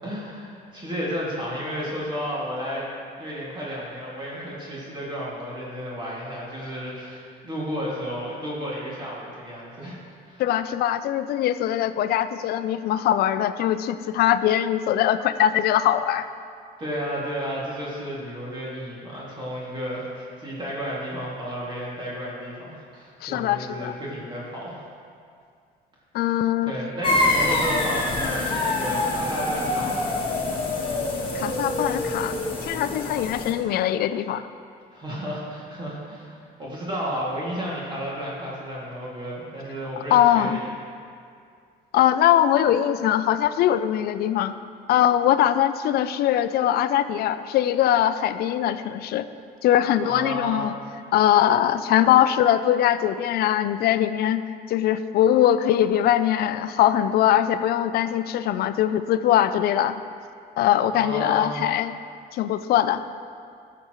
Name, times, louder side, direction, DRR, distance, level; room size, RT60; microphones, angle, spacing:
voice 1, 0.0-2.9 3.2-10.0 10.3-10.4 16.8-24.8 26.6-30.1 34.9-40.7 50.0-50.6 60.9-61.6, equal, 25° right, -6 dB, 2.2 m, -32 dB
voice 2, 10.4-16.3 23.2-23.9 26.1-26.8 31.3-34.4 40.1-40.6 41.9-44.5 44.9-49.3 49.6-50.7 51.1-54.4 54.7-60.0 60.6-61.9 62.3-63.0, left 11 dB, 65° left, 12 dB, 0.4 m, -21 dB
sound 1, 27.0-33.5, left 2 dB, 30° left, 1.5 m, -25 dB
13.0 x 6.8 x 3.1 m, 2.3 s
cardioid pair, 110°, 17 cm